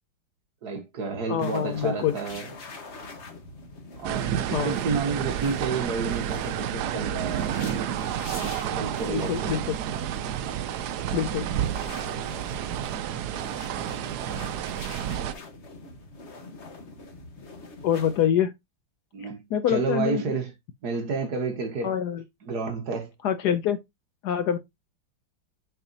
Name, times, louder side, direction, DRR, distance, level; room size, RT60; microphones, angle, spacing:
voice 1, 0.6-2.5 4.0-7.6 8.3-9.6 19.1-20.5 20.8-22.0 22.4-23.1, right 4 dB, 55° right, 1.8 m, -31 dB
voice 2, 1.3-2.1 4.5-4.7 9.1-9.8 11.1-11.5 17.8-18.5 19.5-20.4 21.8-22.2 23.2-23.8 24.2-24.6, left 9 dB, 70° left, 1.0 m, -25 dB
sound 1, 1.4-18.3, left 3 dB, 40° left, 1.5 m, -44 dB
sound 2, 4.0-15.3, right 10 dB, 70° right, 1.0 m, -30 dB
6.8 x 5.5 x 2.8 m
omnidirectional pair, 2.1 m